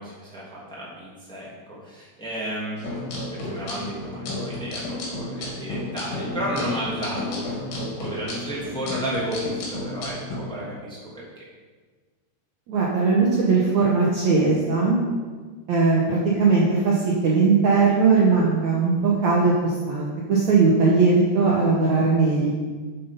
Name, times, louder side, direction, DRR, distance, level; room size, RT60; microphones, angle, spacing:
voice 1, 0.0-2.8 3.3-11.2, equal, ahead, -8 dB, 1.7 m, -32 dB
sound 1, 2.8-10.4, left 2 dB, 60° left, 3.9 m, -32 dB
voice 2, 12.7-15.0 15.7-22.5, right 4 dB, 75° right, -4 dB, 1.7 m, -19 dB
7.9 x 7.6 x 5.3 m, 1.4 s
omnidirectional pair, 4.9 m